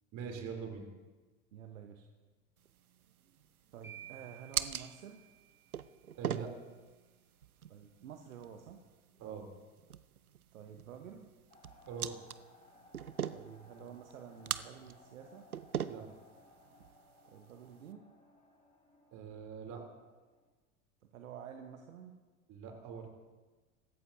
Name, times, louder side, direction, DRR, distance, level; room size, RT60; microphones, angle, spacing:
voice 1, 0.1-0.9 6.2-6.5 9.2-9.5 11.9-12.2 15.9-16.1 19.1-19.8 22.5-23.1, right 6 dB, 40° right, 2 dB, 3.2 m, -42 dB
voice 2, 1.5-2.1 3.4-3.5 3.7-5.2 7.7-8.8 10.5-11.3 13.3-15.5 17.3-18.0 21.1-22.2, right 8 dB, 70° right, 5 dB, 1.2 m, -50 dB
sound 1, 2.6-17.9, right 9 dB, 90° right, 0.6 m, -43 dB
sound 2, 3.8-6.0, right 10 dB, 5° right, 5.1 m, -54 dB
sound 3, 11.5-20.5, left 2 dB, 20° left, 5.0 m, -62 dB
24.0 x 13.5 x 2.7 m, 1.3 s
figure-of-eight pair, 85°, 42 cm